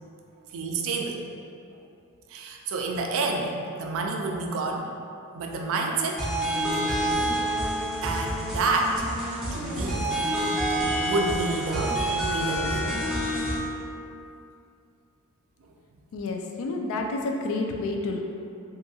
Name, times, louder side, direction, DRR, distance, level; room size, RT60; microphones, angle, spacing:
voice 1, 0.5-1.2 2.3-4.9 5.3-6.3 6.6-7.1 8.0-9.0 9.5-10.6 11.0-13.0, right 3 dB, 60° right, 1 dB, 0.3 m, -29 dB
sound 1, 6.2-13.6, right 1 dB, ahead, 0.5 m, -28 dB
voice 2, 16.1-18.2, left 2 dB, 60° left, 3 dB, 0.3 m, -29 dB
2.7 x 2.3 x 2.6 m, 2.5 s
head